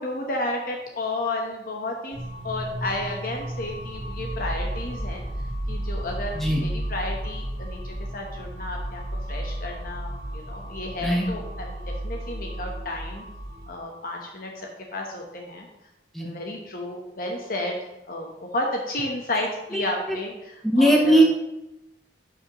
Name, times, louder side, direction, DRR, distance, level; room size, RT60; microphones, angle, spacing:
voice 1, 0.0-2.2 2.4-5.2 5.7-9.0 9.3-13.2 13.7-15.7 16.2-17.8 18.1-21.2, left 1 dB, 55° left, 1 dB, 0.9 m, -32 dB
sound 1, 2.1-13.7, right 1 dB, 35° right, 2.5 m, -33 dB
voice 2, 19.7-20.2 20.6-21.2, right 1 dB, ahead, -1 dB, 0.8 m, -20 dB
11.5 x 5.2 x 3.0 m, 0.92 s
head